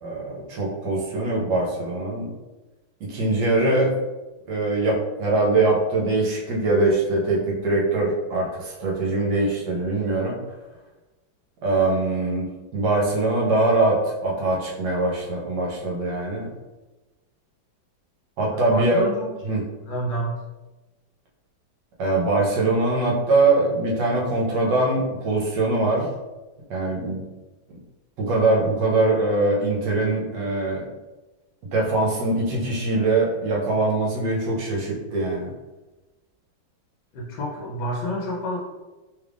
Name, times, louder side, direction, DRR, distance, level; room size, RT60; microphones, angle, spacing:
voice 1, 0.0-2.3 3.0-3.9 4.5-10.4 11.6-12.5 12.7-16.5 18.4-19.0 19.4-19.6 22.0-26.1 26.7-27.2 28.2-30.8 31.7-35.5, right 2 dB, 70° right, -3 dB, 1.3 m, -22 dB
voice 2, 18.6-20.4 37.1-38.6, equal, 70° left, -4 dB, 1.2 m, -29 dB
3.4 x 3.2 x 2.4 m, 1.1 s
omnidirectional pair, 2.1 m